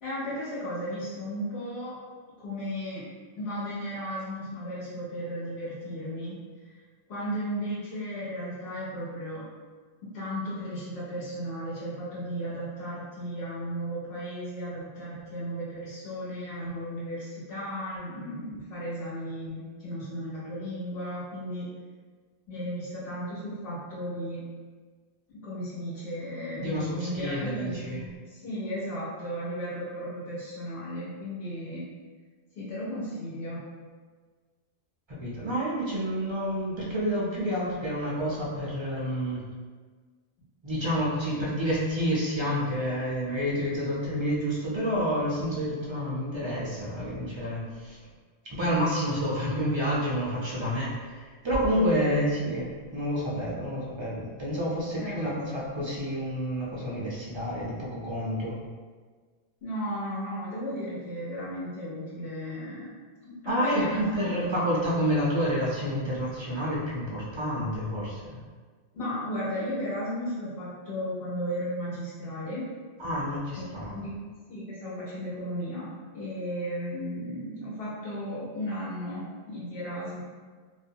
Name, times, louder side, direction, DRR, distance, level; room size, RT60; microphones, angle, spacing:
voice 1, 0.0-2.0 2.4-3.1 3.4-6.4 7.1-9.5 10.0-21.7 22.5-24.4 25.3-31.9 32.5-33.7 52.0-52.2 54.9-55.4 59.6-63.0 63.2-64.7 68.9-72.7 73.5-80.2, equal, 75° left, -9 dB, 1.1 m, -35 dB
voice 2, 26.6-28.0 35.2-39.4 40.6-48.0 48.5-58.6 63.4-68.4 73.0-73.9, equal, 45° right, -5 dB, 0.3 m, -29 dB
2.5 x 2.2 x 2.7 m, 1.5 s
omnidirectional pair, 1.1 m